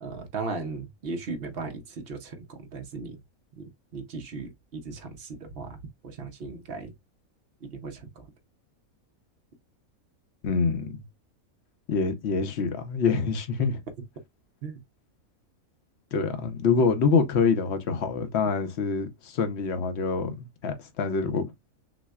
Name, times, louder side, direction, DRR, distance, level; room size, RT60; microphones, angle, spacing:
voice 1, 0.0-3.2 3.6-6.9 7.6-8.3 14.6-14.8, right 4 dB, 50° right, 0.8 m, -37 dB
voice 2, 10.4-11.0 11.9-13.8 16.1-21.5, left 5 dB, 55° left, 0.9 m, -26 dB
6.1 x 2.1 x 2.3 m
omnidirectional pair, 1.5 m